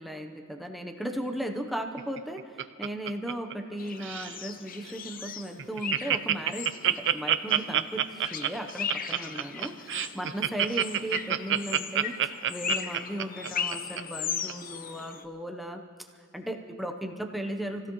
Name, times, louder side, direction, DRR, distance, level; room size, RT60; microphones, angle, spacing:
voice 1, 0.0-15.8 16.3-17.9, right 1 dB, ahead, 3 dB, 0.7 m, -36 dB
Laughter, 2.0-3.7 4.0-4.4 4.9-5.0 5.2-5.3 5.6-14.0 14.5-14.6, right 10 dB, 55° right, 0.5 m, -27 dB
sound 1, 3.8-15.2, left 7 dB, 40° left, 0.7 m, -38 dB
27.5 x 16.5 x 3.0 m, 2.2 s
head